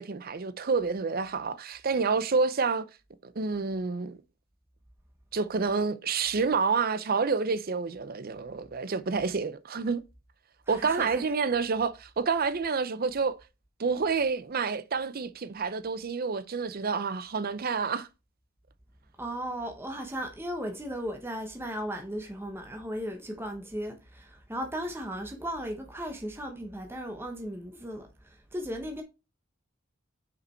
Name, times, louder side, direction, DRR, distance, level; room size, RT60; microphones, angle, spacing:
voice 1, 0.0-2.9 3.2-4.2 5.3-10.0 10.7-13.4 13.8-18.1, right 4 dB, 50° right, 0.6 m, -28 dB
voice 2, 10.7-11.2 19.2-29.0, equal, 10° right, 1.0 m, -36 dB
5.9 x 5.0 x 4.5 m
head